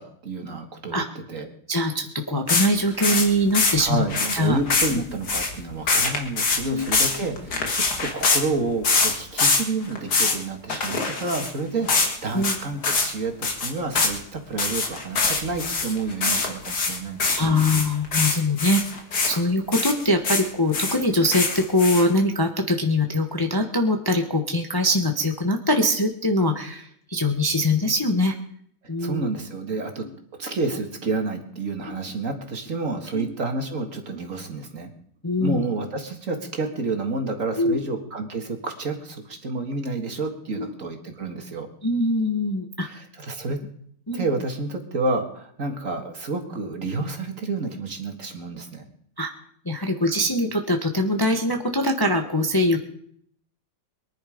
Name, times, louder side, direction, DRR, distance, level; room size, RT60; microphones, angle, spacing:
voice 1, 0.0-1.5 3.8-17.7 28.8-30.0 30.4-34.9 35.4-41.7 42.8-43.6 44.1-48.8, right 3 dB, 50° right, 4 dB, 2.2 m, -29 dB
voice 2, 1.7-4.0 4.3-4.6 4.9-5.0 6.6-6.9 12.3-12.6 17.4-18.8 19.2-28.3 28.9-29.3 33.1-33.3 35.2-35.6 37.6-37.8 40.6-40.7 41.8-42.9 44.1-44.3 49.2-49.3 49.6-52.8, left 1 dB, 15° left, 4 dB, 1.0 m, -22 dB
sound 1, 2.5-8.4 8.8-9.6 9.9-10.4 10.7-11.5 11.9-12.2 12.4-12.6 12.8-13.1 13.4-14.2 14.6-19.4 19.7-20.5 20.7-22.2, left 4 dB, 75° left, 2.5 m, -23 dB
23.0 x 10.5 x 5.1 m, 0.64 s
omnidirectional pair, 1.8 m